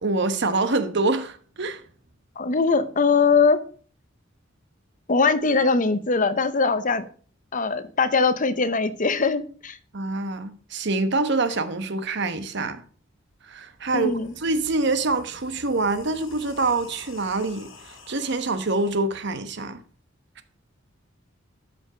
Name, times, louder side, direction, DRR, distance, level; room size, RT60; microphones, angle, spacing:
voice 1, 0.0-1.8 9.9-12.8 13.5-14.1 14.4-17.7 18.1-19.8, right 3 dB, 60° right, 1.0 m, -25 dB
voice 2, 2.4-3.6 5.1-7.1 7.5-9.8 13.9-14.3, left 4 dB, 40° left, 0.7 m, -21 dB
sound 1, 13.3-13.4 13.7-19.0, left 3 dB, 90° left, 2.3 m, -48 dB
13.0 x 5.2 x 5.0 m
head